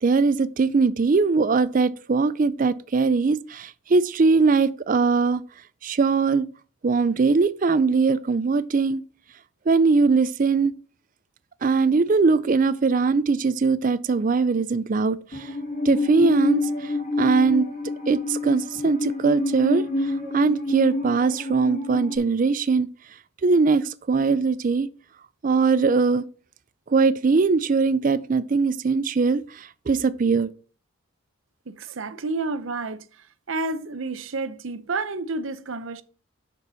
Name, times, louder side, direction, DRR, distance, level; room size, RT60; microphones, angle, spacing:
voice 1, 0.0-5.4 5.8-6.5 6.8-9.0 9.7-10.7 11.6-15.5 15.8-16.9 17.2-17.7 18.1-22.9 23.4-24.9 25.4-26.2 26.9-30.5, right 4 dB, 35° right, 0.4 m, -21 dB
Musical instrument, 15.3-22.2, left 2 dB, 35° left, 2.0 m, -28 dB
voice 2, 31.7-33.0 33.5-36.0, right 3 dB, 65° right, 0.7 m, -30 dB
6.8 x 4.5 x 6.8 m
head